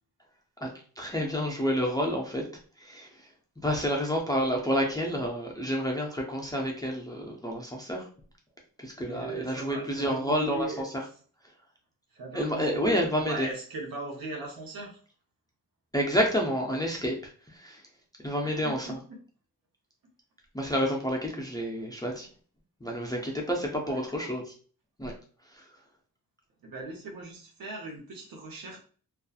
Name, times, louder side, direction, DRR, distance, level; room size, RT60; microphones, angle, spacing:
voice 1, 1.0-2.4 2.8-3.1 3.6-8.1 8.8-10.7 12.3-13.5 15.9-17.2 17.6-17.8 18.2-18.9 20.5-22.3 22.8-24.4 25.0-25.1, equal, 10° left, 0 dB, 0.3 m, -29 dB
voice 2, 9.0-10.8 12.1-15.0 18.4-19.2 21.3-21.5 23.7-24.4 26.6-28.8, right 2 dB, 80° right, 0 dB, 0.9 m, -39 dB
2.6 x 2.3 x 2.3 m, 0.43 s
wide cardioid pair, 170°, 35 cm